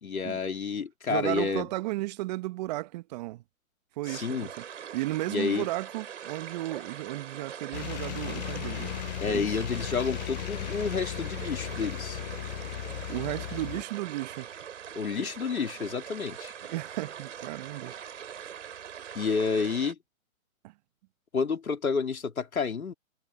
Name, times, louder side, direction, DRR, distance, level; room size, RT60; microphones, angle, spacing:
voice 1, 0.0-1.7 4.1-4.5 5.3-5.7 9.2-12.2 14.9-16.5 19.1-20.0 21.3-22.9, left 5 dB, 80° left, 3.7 m, -30 dB
voice 2, 1.1-3.4 4.0-4.6 4.9-8.9 9.3-9.6 13.1-14.5 15.2-15.3 16.7-17.9 20.6-20.7, right 18 dB, 30° right, 1.4 m, -34 dB
sound 1, 4.0-19.9, right 8 dB, 60° right, 4.5 m, -42 dB
sound 2, 7.7-13.8, left 14 dB, 30° left, 1.0 m, -36 dB
hypercardioid pair, 140°, 42 cm